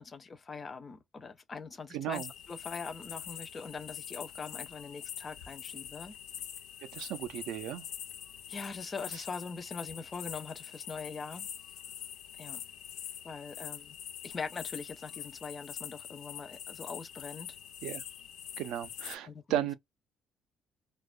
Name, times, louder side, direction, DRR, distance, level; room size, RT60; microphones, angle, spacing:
voice 1, 0.0-6.2 8.5-11.5 12.3-12.6 13.2-14.0 14.2-17.6 19.2-19.7, left 5 dB, 25° left, 0.3 m, -42 dB
voice 2, 1.9-2.3 6.9-7.8 17.8-18.0 18.6-19.7, right 12 dB, 85° right, 0.4 m, -35 dB
sound 1, 2.1-19.2, left 10 dB, 85° left, 0.5 m, -44 dB
2.7 x 2.1 x 2.3 m
cardioid pair, 160°, 0 cm